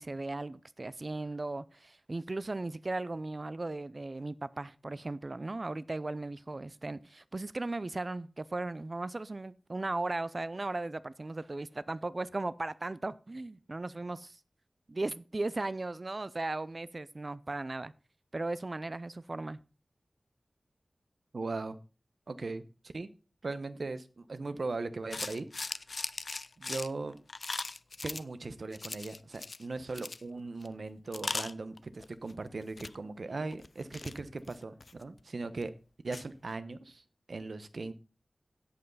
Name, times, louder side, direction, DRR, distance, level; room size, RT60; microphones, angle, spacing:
voice 1, 0.0-14.4 14.9-17.9 18.3-19.6, right 2 dB, 40° right, 0.5 m, -37 dB
voice 2, 21.3-21.8 22.3-23.1 23.4-25.8 26.6-27.2 28.0-35.7 36.0-37.9, right 3 dB, 65° right, 1.0 m, -39 dB
sound 1, 25.1-28.2 28.7-29.6 29.9-30.2 30.6-30.7 31.1-32.3 32.6-33.0 33.5-35.2 35.6-35.7 36.1-36.2, left 3 dB, 60° left, 0.4 m, -39 dB
16.5 x 5.6 x 4.0 m
wide cardioid pair, 85°, 0 cm